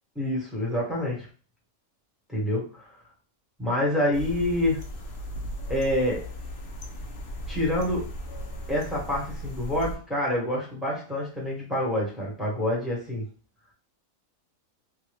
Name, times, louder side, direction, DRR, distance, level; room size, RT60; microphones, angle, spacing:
voice 1, 0.1-1.3 2.3-2.9 3.6-4.8 5.7-6.2 7.5-8.1 8.7-13.2, left 1 dB, ahead, -4 dB, 1.1 m, -27 dB
sound 1, 4.1-10.0, equal, 55° left, 0.7 m, -37 dB
3.3 x 2.3 x 3.3 m, 0.38 s
omnidirectional pair, 1.5 m